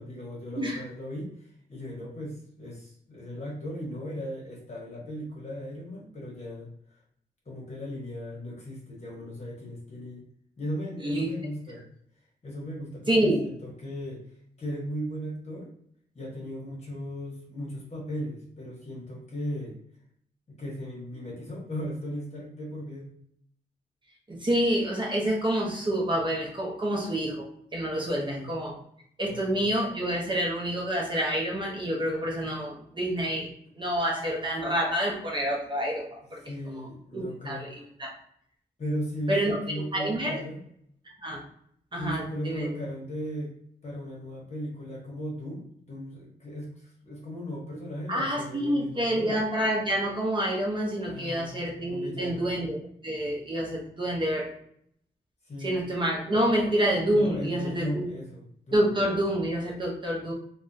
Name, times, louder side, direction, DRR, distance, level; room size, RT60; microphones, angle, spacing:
voice 1, 0.0-6.7 7.4-10.2 10.6-11.9 12.4-14.2 14.6-15.7 16.1-19.8 20.5-23.1 28.1-28.5 29.3-29.7 36.4-37.8 38.8-40.6 42.0-43.5 43.8-49.4 51.0-52.5 55.4-55.8 57.1-58.9, equal, 40° left, -3 dB, 1.2 m, -37 dB
voice 2, 13.1-13.4 24.3-27.5 27.7-28.7 29.2-33.5 33.8-36.4 36.7-38.1 39.3-39.6 39.9-40.4 41.2-41.4 41.9-42.7 48.1-52.8 53.0-54.4 55.6-58.1 58.7-60.3, right 1 dB, 30° right, -2 dB, 0.7 m, -28 dB
3.5 x 2.2 x 2.6 m, 0.68 s
wide cardioid pair, 130°, 17 cm